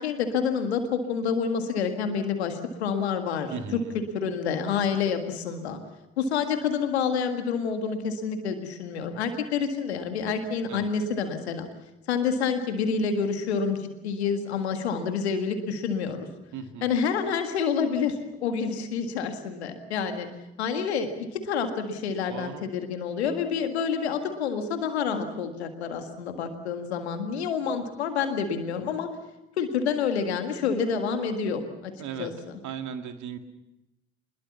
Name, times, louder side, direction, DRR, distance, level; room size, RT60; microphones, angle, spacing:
voice 1, 0.0-3.5 3.9-5.8 6.2-11.7 12.1-16.3 16.8-20.3 20.6-29.1 29.6-31.9 32.2-32.3, left 6 dB, 85° left, 7 dB, 1.8 m, -28 dB
voice 2, 3.5-4.0 10.7-10.9 16.5-16.9 22.3-22.6 32.0-32.3 32.6-33.4, right 7 dB, 65° right, 7 dB, 2.1 m, -36 dB
24.0 x 21.0 x 7.1 m, 0.94 s
hypercardioid pair, 40°, 32 cm